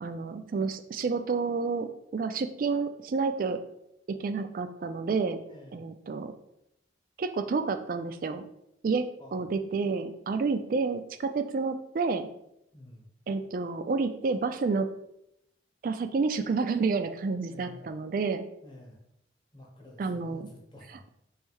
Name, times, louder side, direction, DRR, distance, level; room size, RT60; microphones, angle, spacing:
voice 1, 0.0-3.6 4.1-5.4 5.7-6.3 7.2-8.4 8.8-9.1 9.3-12.3 13.3-14.9 15.8-18.5 20.0-20.5, right 4 dB, 50° right, 9 dB, 0.3 m, -29 dB
voice 2, 5.5-5.9 9.2-9.4 12.7-13.1 17.5-17.9 18.6-19.0 19.5-21.1, left 1 dB, 25° left, -1 dB, 0.9 m, -50 dB
3.2 x 2.7 x 4.5 m, 0.80 s
head